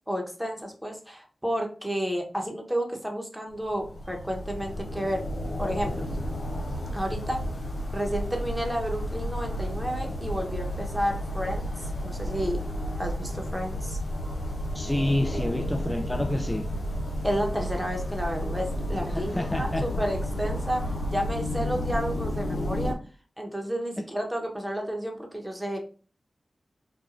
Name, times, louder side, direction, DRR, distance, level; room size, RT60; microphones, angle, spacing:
voice 1, 0.1-5.3 5.6-6.1 6.9-7.4 7.9-12.6 13.0-14.0 17.2-23.0 23.4-25.8, equal, 10° right, 0.9 m, -31 dB
sound 1, 3.6-22.9, equal, 90° left, 0.7 m, -32 dB
voice 2, 14.7-16.7 19.1-19.8, left 1 dB, 15° left, 0.3 m, -28 dB
4.5 x 2.3 x 2.5 m
cardioid pair, 50°, 0 cm